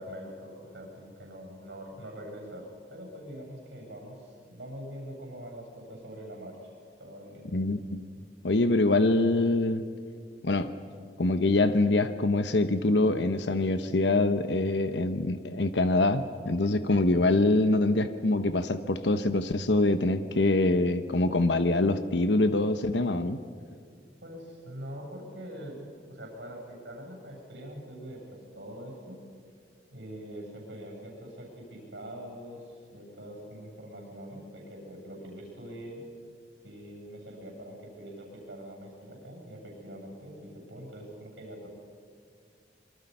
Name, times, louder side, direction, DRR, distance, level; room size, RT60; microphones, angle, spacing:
voice 1, 0.0-2.6 2.9-6.6 7.0-7.4 24.2-25.8 26.1-29.2 29.9-36.0 36.6-41.7, equal, 85° right, 0 dB, 8.0 m, -43 dB
voice 2, 7.5-8.1 8.4-9.8 10.4-10.7 11.2-23.4, left 2 dB, 85° left, 10 dB, 0.9 m, -24 dB
27.0 x 24.0 x 5.6 m, 2.2 s
head